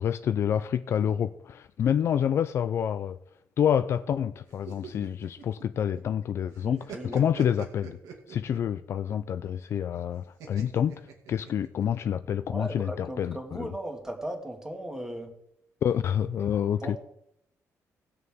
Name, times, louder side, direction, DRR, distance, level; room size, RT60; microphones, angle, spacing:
voice 1, 0.0-3.2 3.6-8.0 8.3-11.0 11.3-13.7 15.8-17.0, left 9 dB, 50° left, 0.4 m, -28 dB
sound 1, 4.5-6.2 6.5-8.7 10.4-11.8, right 6 dB, 85° right, 2.1 m, -44 dB
voice 2, 6.6-7.2 12.5-15.3 16.8-17.0, right 1 dB, 10° right, 2.0 m, -37 dB
18.5 x 6.7 x 3.6 m
cardioid pair, 150°, 6 cm